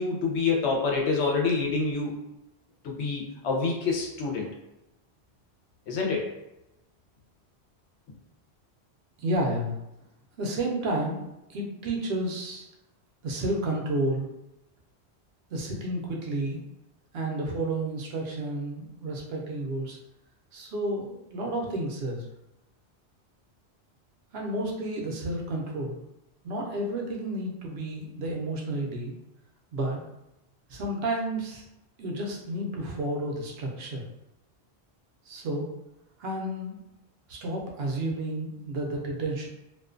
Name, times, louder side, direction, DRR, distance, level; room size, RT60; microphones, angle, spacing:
voice 1, 0.0-2.2 2.8-4.5 5.9-6.3, left 4 dB, 80° left, -1 dB, 0.9 m, -27 dB
voice 2, 9.2-9.7 10.4-12.7 13.2-14.3 15.5-16.6 17.1-20.0 20.5-22.3 24.3-26.0 26.4-29.1 29.7-30.0 30.7-31.6 32.0-34.0 35.3-35.7 36.2-36.8 37.3-39.5, right 1 dB, 70° right, -1 dB, 0.8 m, -31 dB
2.4 x 2.2 x 2.4 m, 0.91 s
omnidirectional pair, 1.1 m